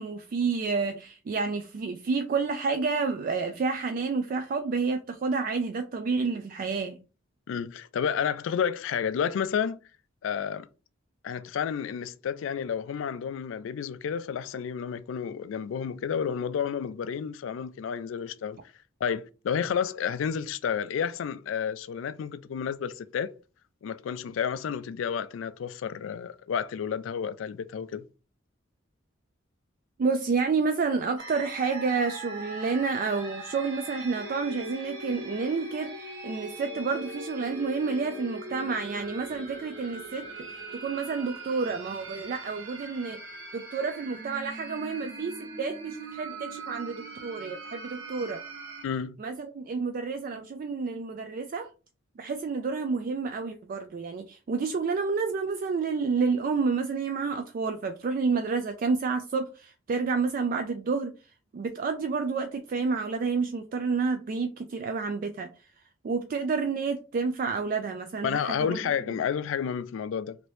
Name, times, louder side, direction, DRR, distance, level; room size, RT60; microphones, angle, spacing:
voice 1, 0.0-7.0 30.0-43.2 43.5-48.4 49.2-51.7 52.2-61.1 61.5-65.5 66.0-68.8 69.1-69.2, right 4 dB, 45° right, 0.3 m, -29 dB
voice 2, 7.5-9.8 10.2-10.7 11.2-18.6 19.0-23.3 23.8-28.0 48.8-49.2 68.2-70.4, left 7 dB, 85° left, 0.3 m, -31 dB
sound 1, 31.2-48.8, right 2 dB, 80° right, 1.6 m, -41 dB
2.9 x 2.6 x 3.1 m
head